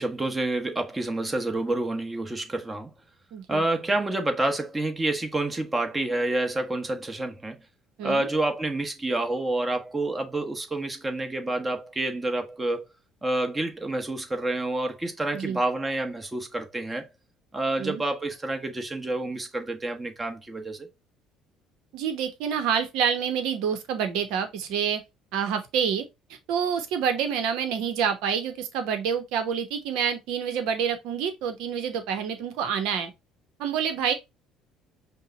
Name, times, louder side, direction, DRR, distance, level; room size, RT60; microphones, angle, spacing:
voice 1, 0.0-2.9 3.5-7.6 8.0-12.8 13.2-17.1 17.5-20.9, right 2 dB, 20° right, 1.2 m, -28 dB
voice 2, 3.3-3.6 8.0-8.3 15.3-15.6 17.8-18.0 21.9-25.0 25.3-26.1 26.5-33.1 33.6-34.1, right 7 dB, 65° right, 1.0 m, -27 dB
5.4 x 2.3 x 4.0 m
hypercardioid pair, 55°, 0 cm